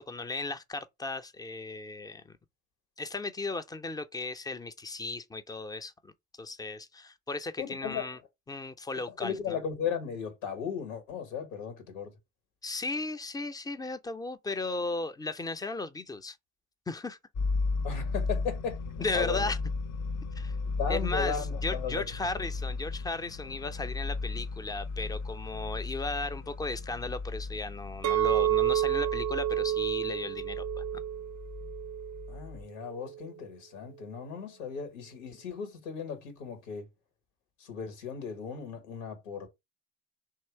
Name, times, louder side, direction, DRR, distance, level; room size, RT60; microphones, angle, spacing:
voice 1, 0.1-2.4 3.0-6.1 6.4-8.2 8.5-9.6 12.6-16.4 16.9-17.2 19.0-19.6 20.4-20.6 20.9-30.8, left 3 dB, 10° left, 0.5 m, -36 dB
voice 2, 7.6-8.0 9.1-12.1 17.8-19.5 20.8-22.0 32.3-36.9 37.6-39.5, left 6 dB, 80° left, 1.3 m, -36 dB
sound 1, 17.3-32.6, left 3 dB, 50° left, 0.7 m, -35 dB
Chink clink, 28.0-32.4 32.8-33.2, right 12 dB, 45° right, 0.5 m, -30 dB
3.0 x 2.8 x 4.5 m
hypercardioid pair, 60°, 38 cm